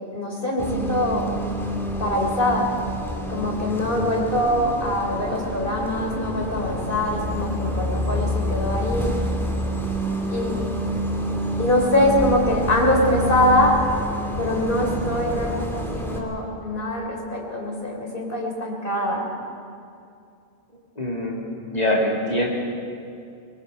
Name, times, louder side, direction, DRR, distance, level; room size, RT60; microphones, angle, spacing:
voice 1, 0.1-1.2 2.0-2.7 3.3-9.1 10.3-10.7 11.6-13.8 14.4-19.3, left 1 dB, 55° left, -1 dB, 3.9 m, -23 dB
Bus, 0.6-16.2, equal, ahead, 2.2 m, -28 dB
voice 2, 21.0-21.4 21.7-22.5, left 1 dB, 40° left, -2 dB, 2.9 m, -23 dB
23.5 x 21.5 x 5.5 m, 2.4 s
omnidirectional pair, 1.1 m